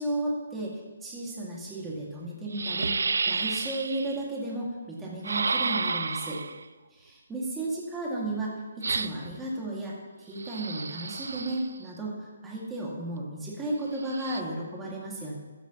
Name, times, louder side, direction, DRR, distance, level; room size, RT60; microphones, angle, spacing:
voice 1, 0.0-6.4 6.9-15.3, right 1 dB, 10° right, -4 dB, 2.1 m, -34 dB
sound 1, 1.8-1.9 2.5-4.2 5.2-6.6 8.8-9.4 10.4-11.8 13.9-14.4, right 4 dB, 85° right, 0.5 m, -31 dB
14.5 x 12.0 x 3.0 m, 1.3 s
hypercardioid pair, 170°, 0 cm